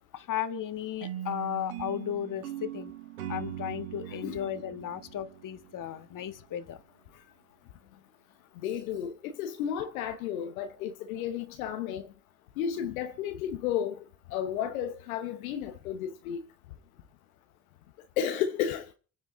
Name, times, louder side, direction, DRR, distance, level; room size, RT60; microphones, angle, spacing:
voice 1, 0.1-2.9 3.3-6.8, left 10 dB, 50° left, 1.8 m, -35 dB
sound 1, 1.0-6.1, right 11 dB, 85° right, 1.4 m, -40 dB
voice 2, 4.1-4.5 8.6-12.1 12.6-16.4 18.2-18.9, left 9 dB, 80° left, 1.1 m, -33 dB
27.5 x 9.9 x 3.9 m
hypercardioid pair, 55°, 42 cm